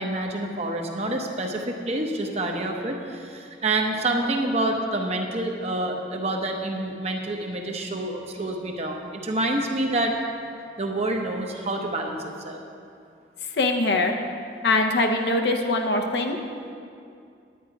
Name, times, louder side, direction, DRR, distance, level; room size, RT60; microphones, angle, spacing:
voice 1, 0.0-10.1 10.8-12.6, right 2 dB, 35° right, 2 dB, 0.9 m, -27 dB
voice 2, 13.6-14.1 14.6-16.4, left 2 dB, 65° left, 3 dB, 0.8 m, -22 dB
10.0 x 9.1 x 4.7 m, 2.4 s
head